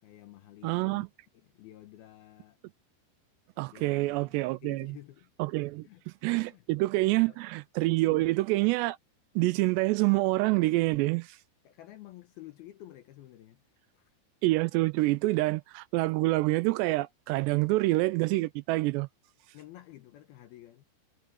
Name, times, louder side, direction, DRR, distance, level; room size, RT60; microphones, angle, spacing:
voice 1, 0.0-1.1 1.4-2.6 3.7-5.3 5.8-6.0 6.5-6.7 7.3-7.4 8.1-8.4 11.6-13.6 13.9-14.1 19.5-20.8, left 14 dB, 75° left, 2.4 m, -51 dB
voice 2, 0.6-1.1 3.6-4.9 5.4-9.0 9.4-11.4 14.4-19.1, right 21 dB, 85° right, 2.5 m, -27 dB
omnidirectional pair, 5.4 m